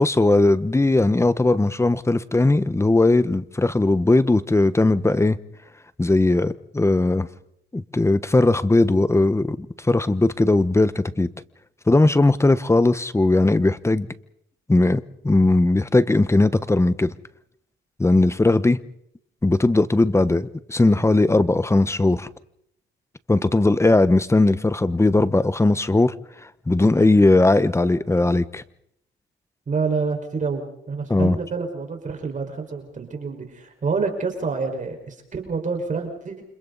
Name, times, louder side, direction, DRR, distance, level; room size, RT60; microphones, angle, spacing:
voice 1, 0.0-5.4 6.0-7.3 7.7-11.3 11.9-14.1 14.7-17.1 18.0-18.8 19.4-22.3 23.3-26.1 26.7-28.6 31.1-31.4, left 2 dB, 15° left, 1.2 m, -18 dB
voice 2, 29.7-36.4, right 4 dB, 40° right, 5.3 m, -27 dB
29.5 x 26.5 x 4.1 m
cardioid pair, 90°, 20 cm